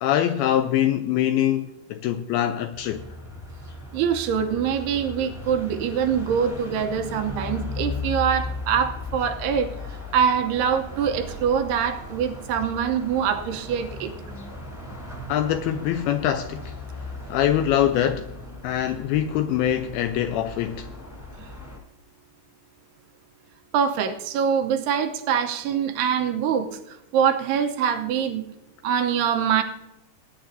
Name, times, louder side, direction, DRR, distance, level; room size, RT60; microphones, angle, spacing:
voice 1, 0.0-3.0 15.3-16.7 17.3-18.3 18.6-20.9, left 11 dB, 85° left, 2.2 m, -23 dB
sound 1, 2.7-21.8, left 2 dB, 5° left, 1.9 m, -37 dB
voice 2, 3.9-9.7 10.1-14.1 23.7-28.4 28.8-29.6, right 7 dB, 80° right, 2.8 m, -24 dB
20.0 x 9.9 x 2.7 m
omnidirectional pair, 4.9 m